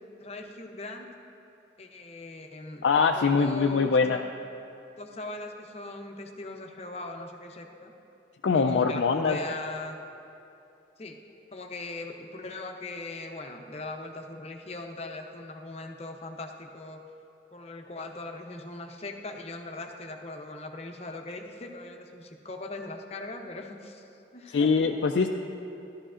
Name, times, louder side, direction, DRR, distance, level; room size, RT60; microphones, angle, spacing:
voice 1, 0.2-1.1 1.8-2.9 3.2-4.3 5.0-7.9 8.5-10.0 11.0-11.2 11.5-17.0 17.5-24.0 24.3-24.7, left 2 dB, 35° left, 3 dB, 0.7 m, -40 dB
voice 2, 2.8-4.2 8.4-9.4 24.5-25.3, left 5 dB, 75° left, 3 dB, 0.4 m, -23 dB
14.5 x 12.0 x 2.5 m, 2.7 s
head